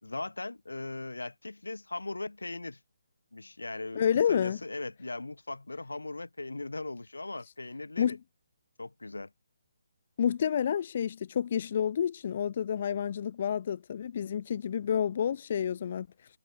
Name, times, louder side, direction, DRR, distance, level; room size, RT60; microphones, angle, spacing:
voice 1, 0.0-2.8 3.3-8.2 8.8-9.3, left 2 dB, 85° left, 3.8 m, -39 dB
voice 2, 3.9-4.6 8.0-8.2 10.2-16.1, left 8 dB, 45° left, 1.0 m, -29 dB
figure-of-eight pair, 145°, 0 cm